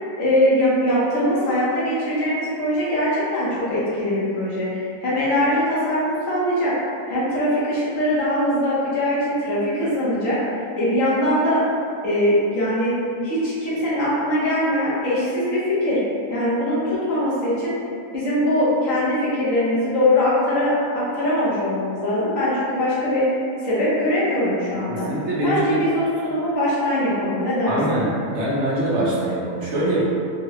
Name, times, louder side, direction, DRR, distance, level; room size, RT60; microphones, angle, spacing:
voice 1, 0.2-6.7 7.1-10.4 10.8-11.6 12.0-13.0 13.2-16.0 16.3-17.8 18.1-23.3 23.6-25.1 25.4-28.0, left 1 dB, 70° left, -9 dB, 1.2 m, -21 dB
voice 2, 24.9-25.8 27.7-30.0, right 1 dB, 60° right, -6 dB, 1.0 m, -23 dB
3.6 x 2.0 x 2.8 m, 2.4 s
omnidirectional pair, 1.5 m